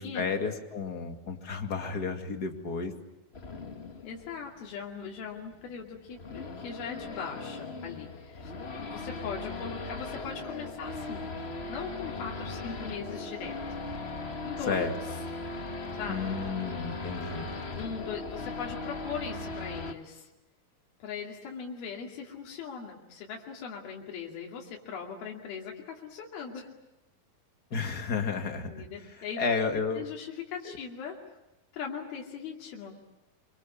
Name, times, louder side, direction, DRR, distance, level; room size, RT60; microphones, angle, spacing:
voice 1, 0.0-2.9 14.7-14.9 16.1-17.5 27.7-28.8 29.4-30.0 30.6-30.8, left 5 dB, 30° left, 5 dB, 2.1 m, -32 dB
Race car auto racing / Idling / Accelerating revving vroom, 3.3-19.9, left 3 dB, 70° left, 0.6 m, -39 dB
voice 2, 4.0-8.5 8.8-13.9 14.4-14.9 15.9-16.3 17.7-20.3 21.0-26.7 28.7-31.2 31.7-33.0, left 6 dB, 90° left, -1 dB, 4.5 m, -40 dB
27.0 x 24.5 x 8.6 m, 0.97 s
omnidirectional pair, 4.2 m